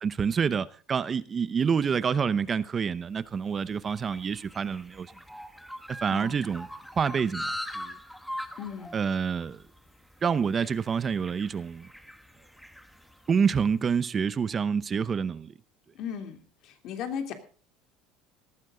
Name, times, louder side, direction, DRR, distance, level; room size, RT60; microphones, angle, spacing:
voice 1, 0.0-5.1 6.0-6.7 7.0-7.9 8.9-9.6 10.2-11.9 13.3-15.5, right 6 dB, 25° right, 0.7 m, -27 dB
sound 1, 3.1-13.7, equal, ahead, 1.4 m, -42 dB
voice 2, 8.6-9.0 15.9-16.4 16.6-17.3, left 8 dB, 55° left, 3.1 m, -36 dB
18.0 x 14.5 x 3.9 m
cardioid pair, 130°, 0 cm